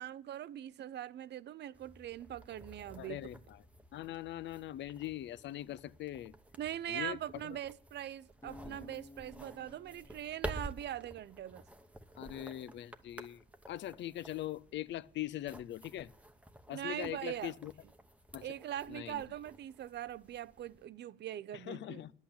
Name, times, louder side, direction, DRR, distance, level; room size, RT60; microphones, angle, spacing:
voice 1, 0.0-3.2 6.6-11.6 16.7-17.5 18.4-22.0, right 11 dB, 60° right, 0.5 m, -42 dB
sound 1, 1.7-20.8, right 1 dB, 5° right, 0.9 m, -51 dB
voice 2, 3.0-3.6 3.9-6.3 6.9-7.6 8.6-8.8 12.2-16.1 16.7-17.7 18.3-18.5 18.9-19.2 21.5-22.1, left 13 dB, 65° left, 0.4 m, -42 dB
Acoustic guitar, 8.4-11.6, left 2 dB, 15° left, 1.2 m, -56 dB
10.0 x 8.0 x 8.5 m
cardioid pair, 90°, 20 cm